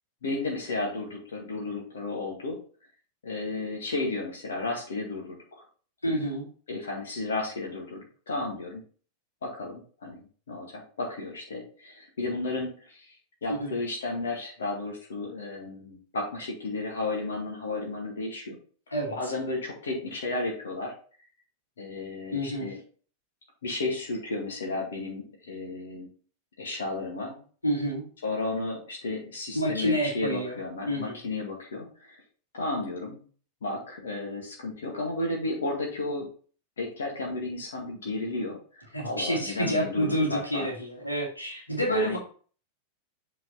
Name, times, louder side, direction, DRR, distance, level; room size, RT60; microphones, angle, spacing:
voice 1, 0.2-2.6 3.2-5.6 6.1-6.2 6.7-8.8 9.4-18.6 19.1-20.9 21.8-22.8 23.6-26.1 26.6-27.4 28.2-32.2 32.5-33.2 33.6-36.3 36.8-40.7 41.9-42.2, left 2 dB, 65° left, -1 dB, 1.8 m, -33 dB
voice 2, 6.0-6.4 13.5-13.8 18.9-19.2 22.3-22.7 27.6-28.0 29.5-30.5 30.9-31.2 38.9-42.2, equal, 85° left, -1 dB, 2.0 m, -28 dB
7.7 x 4.0 x 4.1 m, 0.42 s
figure-of-eight pair, 90°, 0 cm